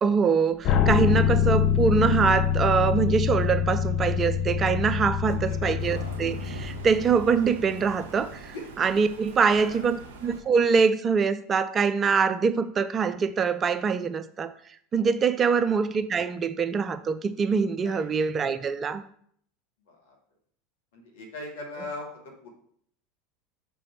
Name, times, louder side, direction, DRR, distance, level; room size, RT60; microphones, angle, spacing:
voice 1, 0.0-14.5 14.9-19.0, right 5 dB, 25° right, 0.4 m, -24 dB
sound 1, 0.6-7.6, left 8 dB, 40° left, 0.6 m, -25 dB
voice 2, 5.5-6.2 9.5-9.9 15.4-15.7 17.8-18.1 19.9-20.1 20.9-22.5, left 2 dB, 60° left, 1.8 m, -41 dB
Thunder, 5.8-10.4, right 4 dB, 55° right, 1.1 m, -43 dB
6.2 x 4.7 x 4.5 m
figure-of-eight pair, 80°, 0 cm